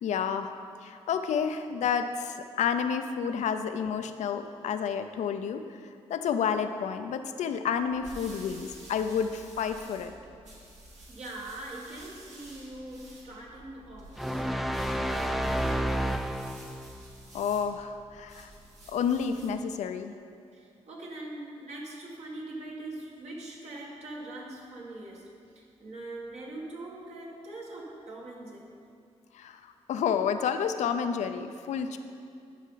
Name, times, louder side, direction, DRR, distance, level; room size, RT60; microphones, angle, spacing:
voice 1, 0.0-0.5 0.8-5.7 6.1-10.1 17.3-18.5 18.9-20.1 29.3-29.6 29.9-32.0, left 7 dB, 80° left, 8 dB, 0.5 m, -30 dB
sound 1, 7.7-19.6, right 1 dB, 80° right, 1.8 m, -51 dB
voice 2, 11.1-15.8 20.5-28.8, right 2 dB, 65° right, -3 dB, 1.8 m, -42 dB
sound 2, 14.2-16.9, equal, ahead, 0.4 m, -30 dB
11.5 x 5.4 x 3.9 m, 2.4 s
cardioid pair, 65°, 12 cm